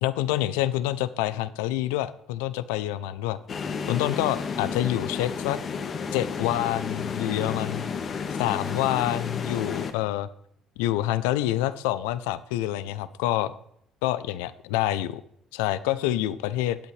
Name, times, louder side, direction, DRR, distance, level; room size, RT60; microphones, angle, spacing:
voice 1, 0.0-3.4 3.9-5.6 6.1-7.9 8.4-10.3 10.8-13.5 14.0-15.2 15.5-16.8, left 14 dB, 85° left, 15 dB, 0.5 m, -27 dB
sound 1, 3.5-9.9, left 5 dB, 50° left, 1.5 m, -32 dB
19.0 x 8.2 x 3.2 m, 0.71 s
hypercardioid pair, 65°, 0 cm